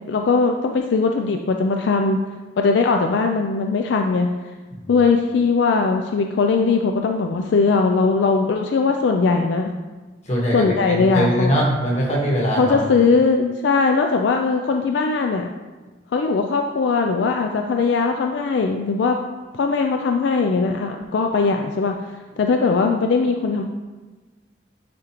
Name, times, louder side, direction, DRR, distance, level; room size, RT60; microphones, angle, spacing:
voice 1, 0.1-2.2 2.6-4.3 4.9-9.7 10.5-11.5 12.6-15.5 16.1-19.2 19.5-22.0 22.4-23.6, left 4 dB, 75° left, 4 dB, 0.4 m, -20 dB
voice 2, 10.3-12.8, equal, 40° left, -3 dB, 1.4 m, -21 dB
9.4 x 3.7 x 3.0 m, 1.2 s
head